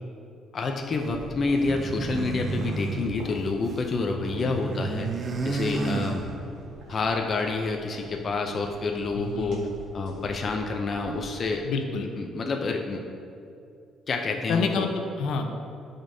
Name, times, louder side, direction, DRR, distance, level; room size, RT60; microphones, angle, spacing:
voice 1, 0.5-5.1 5.5-6.2 6.9-9.7 9.9-11.6 12.0-13.0 14.1-14.9, left 3 dB, 35° left, 3 dB, 0.5 m, -28 dB
sound 1, 0.7-11.6, right 1 dB, 65° right, 1.8 m, -46 dB
sound 2, 1.5-3.9 4.2-6.8, right 3 dB, 30° right, 0.5 m, -32 dB
voice 2, 9.1-9.6 11.6-12.1 14.5-15.5, left 4 dB, 70° left, 4 dB, 0.7 m, -28 dB
12.5 x 5.2 x 2.7 m, 2.5 s
cardioid pair, 145°, 0 cm